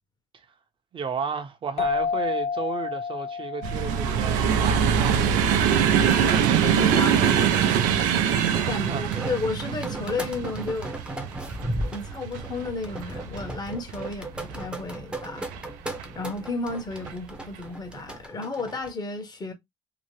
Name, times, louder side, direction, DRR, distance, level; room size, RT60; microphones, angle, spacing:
voice 1, 0.9-5.5 8.6-9.0, right 5 dB, 40° right, 0.8 m, -33 dB
sound 1, 1.8-5.1, left 5 dB, 50° left, 0.7 m, -30 dB
sound 2, 3.6-14.7 15.4-16.0 16.9-17.1 17.4-17.6, right 8 dB, 85° right, 0.5 m, -24 dB
voice 2, 6.6-8.0 8.5-11.0 11.9-15.5 16.1-19.5, left 3 dB, 30° left, 1.1 m, -33 dB
sound 3, 8.8-18.9, right 1 dB, 5° right, 0.8 m, -36 dB
2.9 x 2.0 x 3.1 m
supercardioid pair, 85°, 13 cm